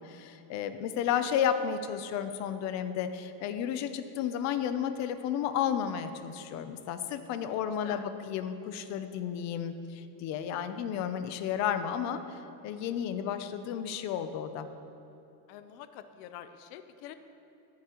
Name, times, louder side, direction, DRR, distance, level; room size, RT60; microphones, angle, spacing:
voice 1, 0.0-12.4 12.6-14.7, left 9 dB, 40° left, 10 dB, 0.5 m, -32 dB
voice 2, 15.5-17.1, left 11 dB, 85° left, 10 dB, 0.8 m, -46 dB
14.0 x 11.5 x 2.9 m, 2.9 s
cardioid pair, 175°, 47 cm